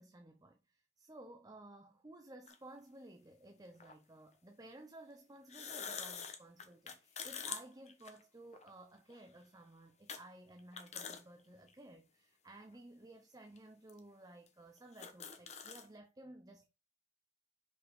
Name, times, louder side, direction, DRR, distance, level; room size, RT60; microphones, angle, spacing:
voice 1, 0.0-16.7, right 1 dB, 20° right, 0.8 m, -56 dB
sound 1, 2.5-2.6 3.8-3.9 5.4-8.7 9.1-9.2 10.1-10.2 10.6-11.2 11.7-11.8 12.6-12.7 13.6-13.7 13.9-14.0 14.5-14.6 14.8-15.9, left 6 dB, 35° left, 1.1 m, -45 dB
6.3 x 5.4 x 4.7 m
head